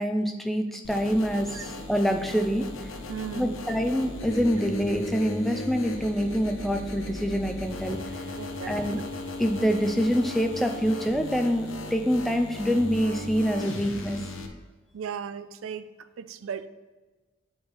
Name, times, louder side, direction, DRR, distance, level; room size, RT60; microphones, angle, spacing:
voice 1, 0.0-2.7 3.4-8.0 8.7-9.0 9.4-14.2, equal, ahead, 5 dB, 0.4 m, -26 dB
sound 1, 0.8-14.5, left 1 dB, 80° left, 0.8 m, -37 dB
voice 2, 3.1-3.6 8.4-9.1 14.9-15.9 16.2-16.7, right 7 dB, 85° right, 12 dB, 0.4 m, -36 dB
8.3 x 4.4 x 3.4 m, 1.3 s
head